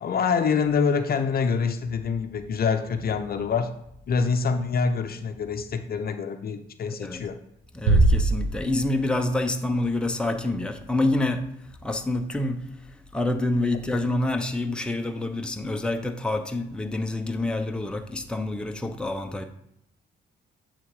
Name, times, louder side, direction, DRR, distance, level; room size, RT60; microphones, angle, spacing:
voice 1, 0.0-3.7 4.1-7.4, left 5 dB, 50° left, 0.7 m, -25 dB
voice 2, 6.9-7.2 7.7-19.4, left 2 dB, 5° left, 0.7 m, -27 dB
Bass drum, 7.9-9.3, right 2 dB, 85° right, 1.1 m, -21 dB
8.3 x 3.7 x 4.8 m
cardioid pair, 90°, 20 cm